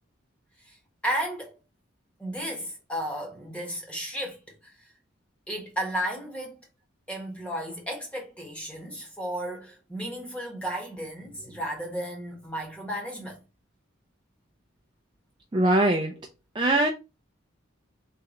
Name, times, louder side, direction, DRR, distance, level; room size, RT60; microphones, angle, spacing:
voice 1, 1.0-1.5 2.2-4.4 5.5-6.6 7.1-13.4, right 1 dB, 5° left, 1.1 m, -33 dB
voice 2, 15.5-16.1 16.6-16.9, right 1 dB, 25° right, 0.4 m, -21 dB
3.7 x 3.3 x 2.9 m
head